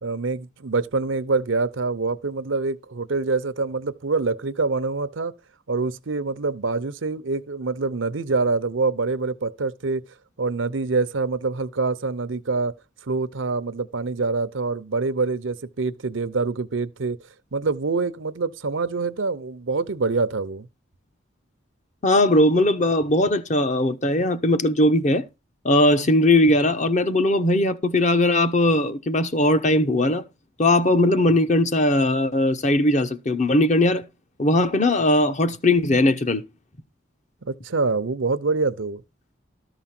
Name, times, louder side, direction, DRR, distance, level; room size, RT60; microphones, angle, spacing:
voice 1, 0.0-5.3 5.7-10.0 10.4-12.7 13.0-17.2 17.5-20.7 37.5-39.0, right 3 dB, 75° right, 0.7 m, -25 dB
voice 2, 22.0-25.2 25.6-30.2 30.6-34.0 34.4-36.4, left 1 dB, 35° left, 0.8 m, -19 dB
13.0 x 4.9 x 5.9 m
head